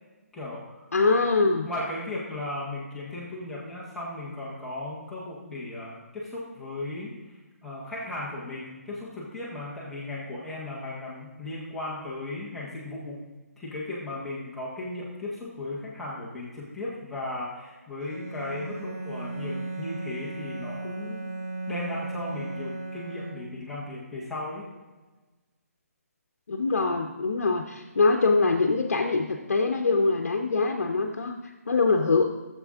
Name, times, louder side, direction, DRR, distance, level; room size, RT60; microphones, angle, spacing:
voice 1, 0.3-0.9 1.6-13.2 13.6-21.4 21.7-24.7, left 2 dB, ahead, -8 dB, 0.8 m, -36 dB
voice 2, 0.9-1.7 26.5-32.2, left 3 dB, 60° left, 4 dB, 0.9 m, -23 dB
Bowed string instrument, 18.0-23.8, right 3 dB, 70° right, 1.5 m, -36 dB
13.5 x 7.5 x 3.6 m, 1.3 s
hypercardioid pair, 180°, 8 cm